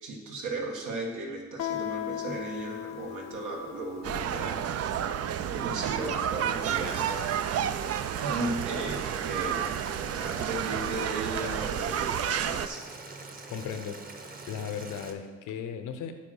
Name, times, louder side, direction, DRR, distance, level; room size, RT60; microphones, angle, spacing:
voice 1, 0.0-4.6 5.5-7.7 8.2-9.7 10.0-12.8, right 2 dB, 80° right, 1 dB, 1.7 m, -36 dB
Guitar, 1.6-7.0, left 13 dB, 60° left, 0.6 m, -39 dB
sound 1, 4.0-12.7, right 9 dB, 55° right, 0.5 m, -31 dB
Boiling, 6.6-15.1, right 3 dB, 30° right, 1.1 m, -44 dB
voice 2, 13.5-14.0 14.5-16.2, left 8 dB, 85° left, 7 dB, 0.9 m, -36 dB
8.5 x 5.0 x 6.4 m, 1.4 s
cardioid pair, 90°, 30 cm